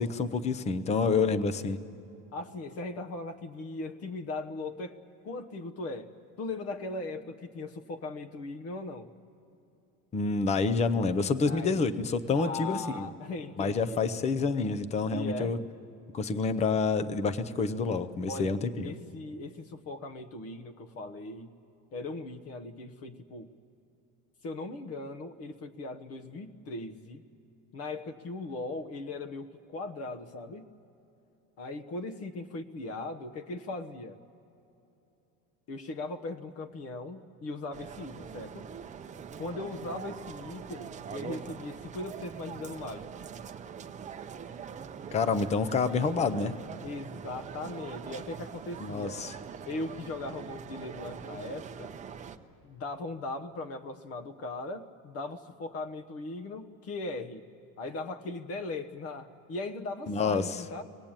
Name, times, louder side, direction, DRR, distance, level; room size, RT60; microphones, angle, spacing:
voice 1, 0.0-1.8 10.1-13.1 13.6-15.6 16.1-18.9 45.1-46.5 48.8-49.3 60.1-60.6, left 4 dB, 20° left, 12 dB, 0.6 m, -28 dB
voice 2, 2.3-5.0 5.2-6.1 6.4-9.1 11.5-11.8 12.3-14.0 15.1-15.6 18.3-21.5 21.9-23.5 24.4-27.2 27.7-30.7 31.6-34.2 35.7-38.7 39.4-43.0 46.8-49.2 49.7-51.9 52.6-57.5 57.8-60.8, left 2 dB, 45° left, 6 dB, 1.1 m, -39 dB
sound 1, 37.7-52.4, right 7 dB, 20° right, 0.7 m, -43 dB
24.5 x 19.5 x 8.9 m, 3.0 s
cardioid pair, 160°, 35 cm